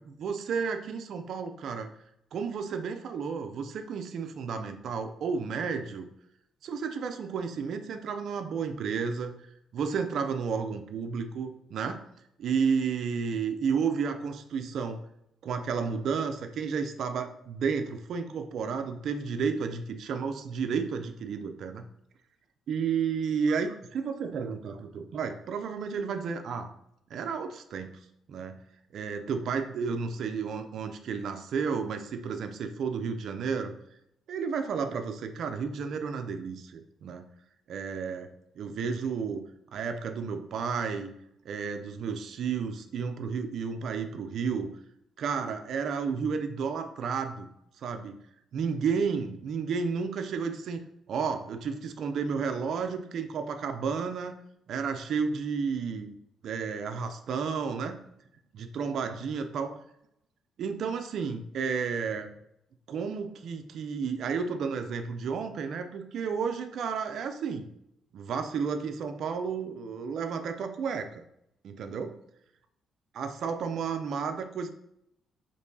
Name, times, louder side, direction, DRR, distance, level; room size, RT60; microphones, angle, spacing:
voice 1, 0.1-1.9 2.3-6.1 6.6-9.3 9.7-12.0 12.4-15.0 15.4-21.8 22.7-26.7 27.1-27.9 28.3-28.6 28.9-33.7 34.3-37.2 37.7-38.3 38.6-39.4 39.7-41.1 41.5-44.7 45.2-47.5 47.8-48.2 48.5-50.8 51.1-54.4 54.7-56.1 56.4-58.0 58.5-59.8 60.6-62.3 62.9-67.7 68.1-71.2 71.6-72.2 73.1-74.7, right 6 dB, 65° right, 6 dB, 0.4 m, -32 dB
4.4 x 2.9 x 2.7 m, 0.77 s
cardioid pair, 90°, 0 cm